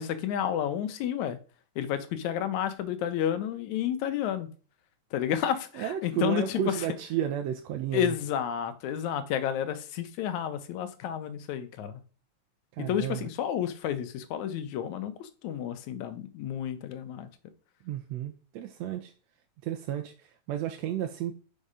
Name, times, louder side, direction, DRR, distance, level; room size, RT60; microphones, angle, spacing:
voice 1, 0.0-1.4 1.8-4.5 5.1-6.7 7.9-12.0 12.8-17.3, left 9 dB, 80° left, 2.2 m, -31 dB
voice 2, 5.7-8.2 12.7-13.3 17.8-19.1 19.6-21.3, right 10 dB, 75° right, 1.7 m, -32 dB
5.8 x 5.1 x 5.5 m
omnidirectional pair, 3.4 m